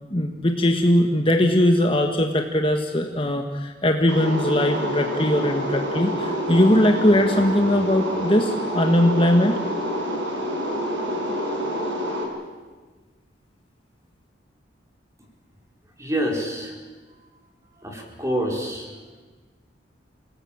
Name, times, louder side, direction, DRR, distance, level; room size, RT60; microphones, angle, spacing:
voice 1, 0.1-9.6, left 1 dB, 30° left, 3 dB, 1.6 m, -20 dB
sound 1, 4.1-12.2, equal, 85° right, 5.9 m, -27 dB
voice 2, 16.0-16.8 17.8-19.0, equal, 15° right, 0 dB, 4.6 m, -27 dB
28.5 x 18.5 x 8.8 m, 1.4 s
head